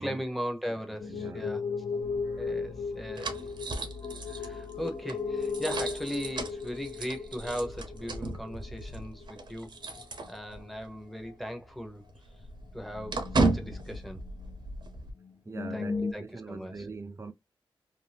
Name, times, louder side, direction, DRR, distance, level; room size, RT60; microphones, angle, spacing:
voice 1, 0.0-1.6 2.4-3.5 4.2-9.8 10.3-12.0 12.7-14.2 15.7-16.9, equal, ahead, 0.8 m, -38 dB
sound 1, 1.0-9.5 9.8-10.4 10.7-10.8 11.3-11.4 12.4-14.5 14.9-15.0 15.2-16.1, left 5 dB, 45° left, 0.8 m, -37 dB
voice 2, 1.1-1.5 2.2-2.6 15.5-17.3, right 4 dB, 30° right, 0.5 m, -42 dB
sound 2, 2.0-10.9 11.2-11.3 11.6-15.1, right 2 dB, 60° right, 0.7 m, -35 dB
2.7 x 2.1 x 3.3 m
cardioid pair, 65°, 9 cm